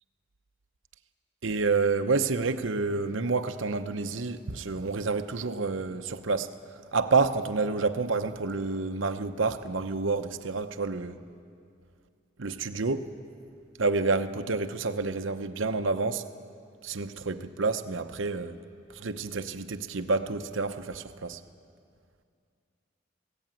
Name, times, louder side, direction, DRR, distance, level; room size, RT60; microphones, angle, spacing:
voice 1, 1.4-6.5 6.9-11.2 12.4-13.1 13.8-16.2 16.8-18.6 19.0-21.4, right 4 dB, 80° right, 0.9 m, -29 dB
20.5 x 17.0 x 9.1 m
head